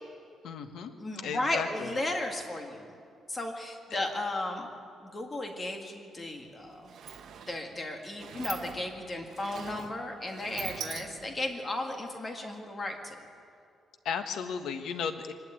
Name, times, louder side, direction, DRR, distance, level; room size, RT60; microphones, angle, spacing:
voice 1, 0.4-1.9 14.0-15.3, left 6 dB, 80° left, 7 dB, 1.3 m, -35 dB
voice 2, 1.0-2.9 3.3-4.7 5.0-6.9 7.5-13.3, left 2 dB, 20° left, 3 dB, 2.0 m, -35 dB
Sliding door, 6.2-6.3 6.6-11.5, right 8 dB, 60° right, 1.2 m, -43 dB
24.5 x 12.0 x 9.1 m, 2.4 s
cardioid pair, 155°, 0 cm